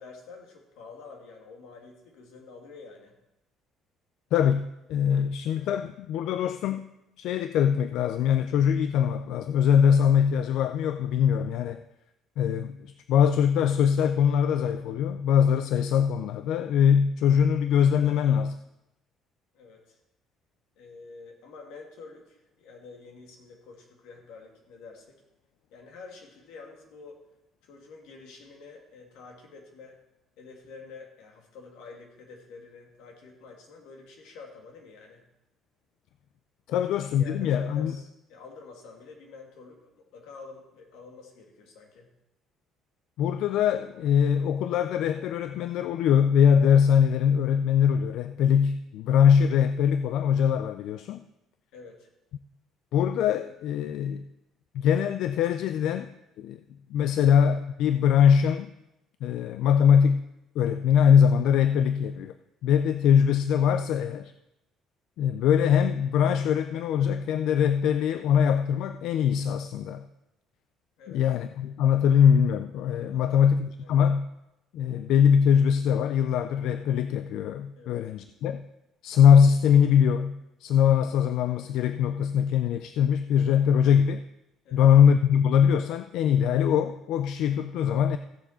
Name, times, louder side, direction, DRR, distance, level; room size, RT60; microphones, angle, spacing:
voice 1, 0.0-3.2 19.5-20.0 20.8-25.1 25.7-27.2 27.6-30.0 30.4-35.3 36.7-36.8 37.2-42.1 51.7-52.1 71.0-71.2 73.1-73.5 73.8-74.0 77.8-78.0 84.6-84.9, left 4 dB, 90° left, 1 dB, 2.4 m, -48 dB
voice 2, 4.3-6.9 7.2-11.8 12.4-12.8 13.1-18.6 36.7-37.9 43.2-51.2 52.9-54.2 54.7-56.1 56.4-56.6 56.9-58.7 59.2-60.2 60.6-62.3 62.6-64.3 65.2-70.0 71.1-74.3 74.7-78.6 79.0-84.2 84.7-88.2, left 8 dB, 65° left, 11 dB, 0.4 m, -22 dB
16.0 x 6.9 x 4.3 m, 0.90 s
cardioid pair, 165°, 0 cm